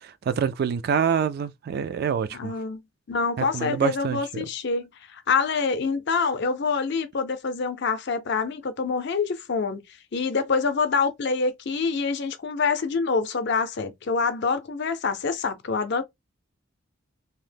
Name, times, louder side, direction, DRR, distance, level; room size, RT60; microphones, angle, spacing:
voice 1, 0.3-2.5 3.4-4.5, right 7 dB, 55° right, 0.3 m, -26 dB
voice 2, 2.3-2.8 3.1-9.8 10.1-16.0, left 4 dB, 60° left, 0.6 m, -26 dB
2.8 x 2.0 x 3.3 m
head